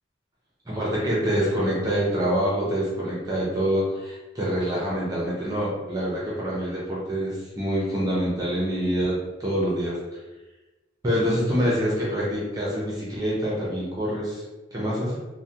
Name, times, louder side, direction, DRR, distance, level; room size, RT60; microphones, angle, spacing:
voice 1, 0.7-10.0 11.0-14.4 14.7-15.2, equal, 20° right, -6 dB, 0.6 m, -26 dB
3.1 x 2.2 x 2.7 m, 1.1 s
head